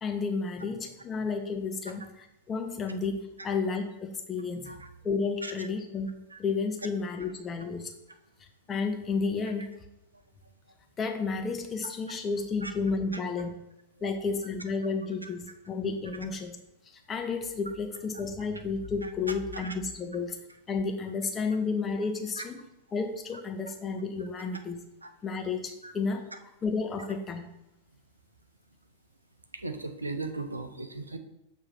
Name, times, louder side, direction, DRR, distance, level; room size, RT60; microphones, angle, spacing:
voice 1, 0.0-4.8 5.0-7.9 8.7-9.7 11.0-13.5 14.0-16.6 16.9-20.4 20.7-22.6 22.9-24.8 25.2-27.4, left 4 dB, 20° left, 4 dB, 0.8 m, -32 dB
voice 2, 29.5-31.2, right 3 dB, 80° right, 7 dB, 0.6 m, -37 dB
6.8 x 2.9 x 5.8 m, 0.88 s
figure-of-eight pair, 90°, 0 cm